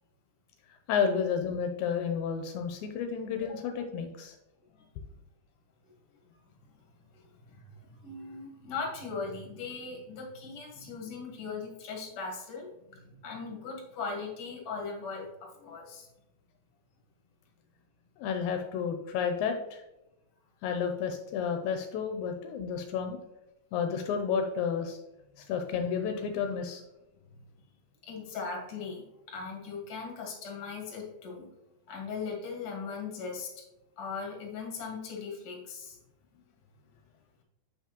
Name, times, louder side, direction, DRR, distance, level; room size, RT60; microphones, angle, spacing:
voice 1, 0.9-4.4 18.2-19.8 20.6-23.2 23.7-25.0 25.4-26.8, left 6 dB, 85° left, 5 dB, 2.0 m, -31 dB
voice 2, 8.0-12.7 13.1-15.3 15.6-16.1 28.1-31.5 31.9-33.5 34.0-36.0, left 4 dB, 55° left, 0 dB, 2.2 m, -39 dB
7.1 x 5.7 x 2.9 m, 0.93 s
omnidirectional pair, 3.4 m